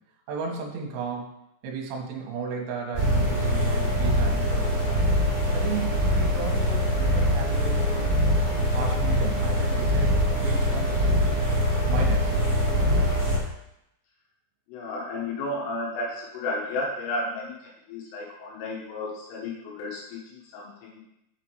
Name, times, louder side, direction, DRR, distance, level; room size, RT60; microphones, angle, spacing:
voice 1, 0.3-1.3 1.6-5.0 5.5-8.1 8.7-11.3 11.9-12.4, right 5 dB, 70° right, 0 dB, 2.9 m, -35 dB
sound 1, 2.9-13.4, equal, 20° right, 0.8 m, -23 dB
voice 2, 14.7-21.0, left 2 dB, 80° left, -3 dB, 3.7 m, -33 dB
6.9 x 5.8 x 4.6 m, 0.83 s
omnidirectional pair, 5.9 m